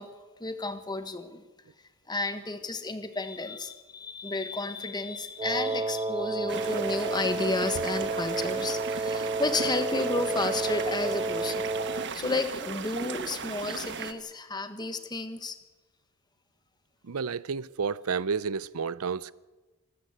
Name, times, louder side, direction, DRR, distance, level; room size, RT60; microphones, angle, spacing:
voice 1, 0.0-1.4 2.1-11.7 12.1-15.6, left 2 dB, 20° left, 1.4 m, -32 dB
Wind instrument woodwind instrument, 5.4-12.2, right 3 dB, 20° right, 0.6 m, -31 dB
sound 1, 6.5-14.1, right 5 dB, 55° right, 1.3 m, -37 dB
voice 2, 17.0-19.3, right 5 dB, 90° right, 0.6 m, -31 dB
25.5 x 13.5 x 8.1 m
head